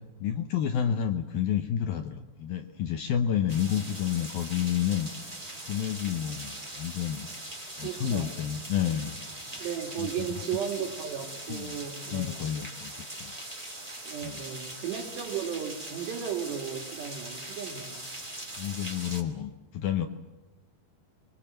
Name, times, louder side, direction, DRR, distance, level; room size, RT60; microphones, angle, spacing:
voice 1, 0.2-5.1 5.6-7.3 7.8-9.2 10.0-10.3 11.5-11.8 12.1-12.9 13.2-13.3 14.2-14.4 18.6-20.1, left 9 dB, 75° left, 6 dB, 2.2 m, -30 dB
sound 1, 3.5-19.2, right 1 dB, 10° right, 2.1 m, -41 dB
voice 2, 7.8-8.3 9.6-12.5 14.1-18.1, right 8 dB, 70° right, 3 dB, 4.6 m, -35 dB
28.5 x 23.5 x 7.6 m, 1.2 s
omnidirectional pair, 5.2 m